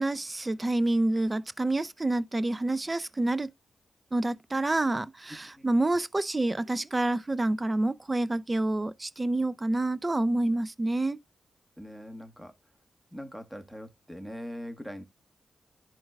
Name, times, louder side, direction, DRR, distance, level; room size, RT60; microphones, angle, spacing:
voice 1, 0.0-3.5 4.1-11.2, right 2 dB, 25° right, 0.5 m, -28 dB
voice 2, 11.8-12.5 13.1-15.0, equal, 5° right, 1.4 m, -41 dB
11.0 x 4.6 x 2.3 m
cardioid pair, 60°, 0 cm